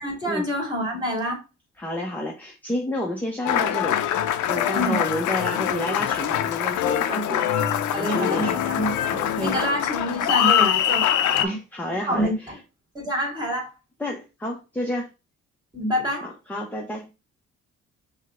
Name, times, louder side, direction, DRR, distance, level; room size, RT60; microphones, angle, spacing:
voice 1, 0.0-1.4 4.7-5.0 7.0-7.2 7.9-8.9 9.4-11.1 11.3-11.6 12.1-12.3 12.9-13.7 15.7-16.3, equal, 15° right, 2.2 m, -26 dB
voice 2, 1.8-4.2 4.5-7.5 7.9-8.6 9.1-9.6 11.4-12.6 14.0-15.1 16.2-17.1, left 1 dB, 5° left, 0.7 m, -30 dB
Applause, 3.4-11.5, left 10 dB, 75° left, 0.5 m, -23 dB
5.3 x 2.2 x 3.6 m
cardioid pair, 90°, 30 cm